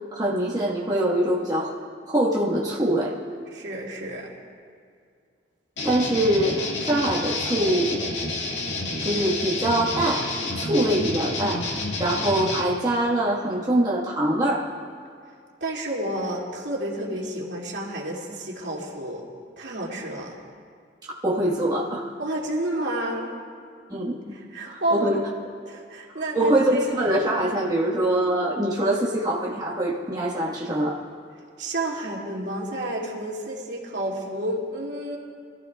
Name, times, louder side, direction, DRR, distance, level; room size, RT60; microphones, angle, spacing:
voice 1, 0.1-1.7 2.1-3.1 5.8-8.1 9.0-11.7 12.0-14.7 21.2-22.1 23.9-24.3 24.7-25.2 26.3-31.0, right 1 dB, 20° right, -5 dB, 1.5 m, -24 dB
voice 2, 3.5-4.3 15.6-19.2 19.6-20.4 22.2-23.3 24.3-25.1 25.6-27.1 31.6-35.2, right 1 dB, 75° right, -3 dB, 2.4 m, -30 dB
sound 1, 5.8-12.6, left 2 dB, 90° left, 1.9 m, -29 dB
24.5 x 14.0 x 2.4 m, 2.2 s
head